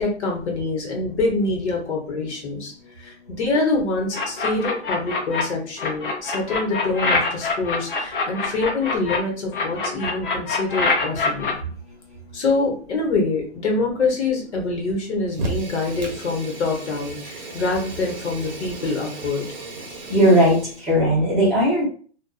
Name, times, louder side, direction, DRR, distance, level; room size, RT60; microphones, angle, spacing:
voice 1, 0.0-2.7 3.0-11.6 12.3-19.4, left 3 dB, 75° left, 1 dB, 1.1 m, -25 dB
sound 1, 4.1-5.4 5.8-9.2 9.5-11.5, left 4 dB, 50° left, 0.8 m, -24 dB
Fire, 15.3-20.9, right 2 dB, 40° right, 0.7 m, -35 dB
voice 2, 20.1-21.8, equal, ahead, -10 dB, 0.6 m, -17 dB
2.5 x 2.3 x 2.3 m, 0.42 s
hypercardioid pair, 155°, 34 cm